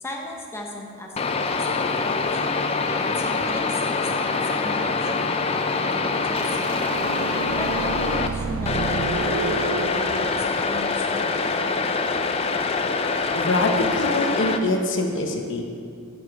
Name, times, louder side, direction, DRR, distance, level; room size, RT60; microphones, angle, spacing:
voice 1, 0.0-1.9 2.2-2.6 2.8-6.7 7.5-11.7, left 1 dB, 10° left, -1 dB, 0.9 m, -37 dB
sound 1, 1.2-8.3 8.6-14.6, left 4 dB, 25° left, 0.4 m, -24 dB
sound 2, 6.4-10.3, right 6 dB, 70° right, 0.3 m, -30 dB
voice 2, 13.3-15.6, left 2 dB, 60° left, 2 dB, 0.9 m, -24 dB
15.0 x 5.0 x 4.7 m, 2.3 s
head